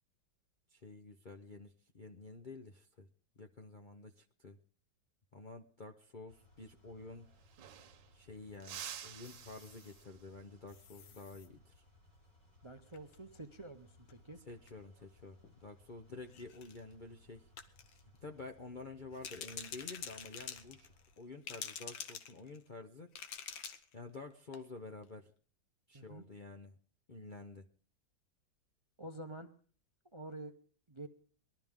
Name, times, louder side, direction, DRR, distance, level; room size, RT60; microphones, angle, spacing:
voice 1, 0.7-3.1 3.4-4.6 5.3-7.3 8.1-11.8 14.4-17.5 17.9-23.1 23.9-25.3 25.9-26.8 27.1-27.7, left 3 dB, 60° left, 2 dB, 0.5 m, -50 dB
sound 1, 6.3-21.4, left 1 dB, 40° left, 7.6 m, -65 dB
sound 2, 7.0-7.1 7.3-8.2 8.6-10.4 12.9-13.2 14.6-15.0, right 9 dB, 80° right, 1.6 m, -50 dB
sound 3, 9.2-10.0 10.7-11.5 12.9-13.1 14.1-14.2 14.5-14.7 15.4-15.6 16.3-16.8 17.6-18.0 19.1-21.2 21.4-22.7 23.1-23.9 24.3-24.4 24.5-24.6, left 8 dB, 85° left, 1.9 m, -47 dB
voice 2, 12.6-14.4 25.9-26.2 29.0-29.5 30.1-30.5 30.9-31.1, right 2 dB, 35° right, 7 dB, 0.4 m, -48 dB
21.0 x 12.5 x 3.6 m, 0.41 s
omnidirectional pair, 2.0 m